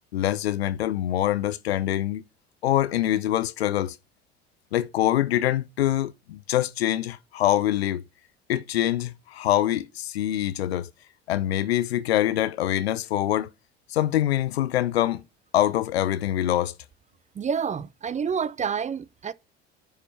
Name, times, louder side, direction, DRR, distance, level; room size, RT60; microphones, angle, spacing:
voice 1, 0.1-2.2 2.6-4.0 4.7-8.0 8.5-10.9 11.3-13.5 13.9-15.2 15.5-16.7, left 13 dB, 70° left, 0.7 m, -24 dB
voice 2, 17.3-19.3, right 6 dB, 20° right, 0.6 m, -28 dB
10.5 x 5.0 x 5.7 m
figure-of-eight pair, 60°, 32 cm